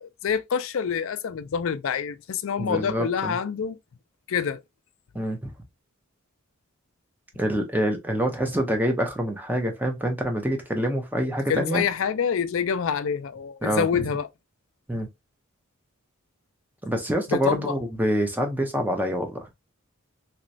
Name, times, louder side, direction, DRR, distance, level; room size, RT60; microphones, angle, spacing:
voice 1, 0.0-3.8 4.3-4.6 11.5-14.3 17.3-17.8, left 7 dB, 65° left, 0.4 m, -26 dB
voice 2, 2.6-3.4 5.1-5.5 7.4-11.8 13.6-14.1 14.9-15.1 16.8-19.5, equal, 10° right, 0.7 m, -26 dB
3.1 x 3.0 x 2.6 m
head